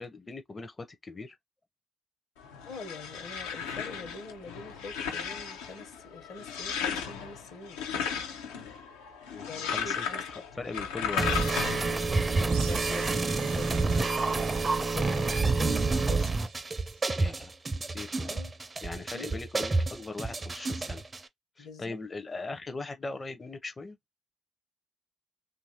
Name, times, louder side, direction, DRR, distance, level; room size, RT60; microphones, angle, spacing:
voice 1, 0.0-1.4 9.3-11.3 17.2-17.5 17.9-18.3 18.8-21.0 21.6-24.0, left 3 dB, 35° left, 0.5 m, -40 dB
sound 1, 2.4-12.1, left 7 dB, 90° left, 0.5 m, -35 dB
voice 2, 2.7-7.8 9.5-10.2 12.0-14.6 14.9-16.3 18.2-18.5 19.1-19.4 21.6-22.0, left 3 dB, 75° left, 1.0 m, -44 dB
sound 2, 11.2-21.2, right 3 dB, 35° right, 0.5 m, -28 dB
sound 3, 12.5-17.3, right 6 dB, 90° right, 0.5 m, -46 dB
2.8 x 2.5 x 2.8 m
hypercardioid pair, 45°, 0 cm